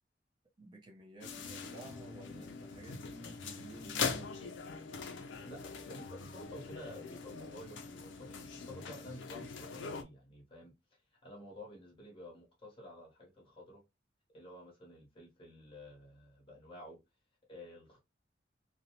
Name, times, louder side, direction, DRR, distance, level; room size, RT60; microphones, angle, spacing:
voice 1, 0.6-4.3, right 2 dB, 25° right, 0.5 m, -52 dB
sound 1, 1.2-10.0, left 5 dB, 70° left, 0.4 m, -42 dB
voice 2, 5.4-13.8 14.3-17.0 17.5-18.0, equal, 30° left, 1.1 m, -51 dB
2.6 x 2.0 x 2.8 m
head